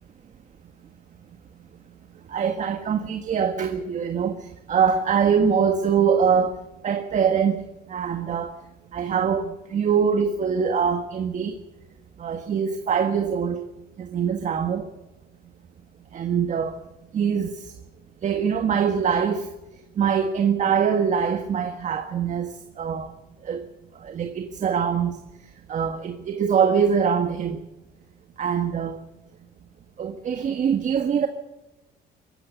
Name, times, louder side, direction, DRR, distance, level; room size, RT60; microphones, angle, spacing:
voice 1, 2.3-7.6 7.9-8.5 8.9-11.6 12.2-13.6 14.0-14.9 16.1-16.8 17.1-17.7 18.2-19.5 20.0-23.1 23.4-23.6 24.0-25.2 25.7-27.6 28.4-29.0 30.0-31.3, right 7 dB, 45° right, 1.6 m, -23 dB
21.5 x 14.5 x 8.3 m
cardioid pair, 110°, 17 cm